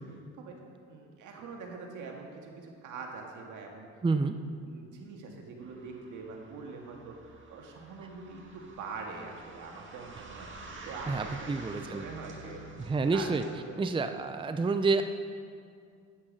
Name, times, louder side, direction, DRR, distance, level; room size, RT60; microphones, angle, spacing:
voice 1, 0.9-3.9 4.6-11.5 11.8-12.7 13.1-13.9 14.1-14.2, right 4 dB, 80° right, 1 dB, 1.9 m, -44 dB
voice 2, 4.0-4.4 11.1-12.0 12.8-13.4 13.8-15.0, right 4 dB, 15° right, 8 dB, 0.5 m, -28 dB
sound 1, 5.6-13.7, right 2 dB, 40° right, 2.0 m, -48 dB
9.7 x 9.1 x 6.4 m, 2.2 s
cardioid pair, 90°, 30 cm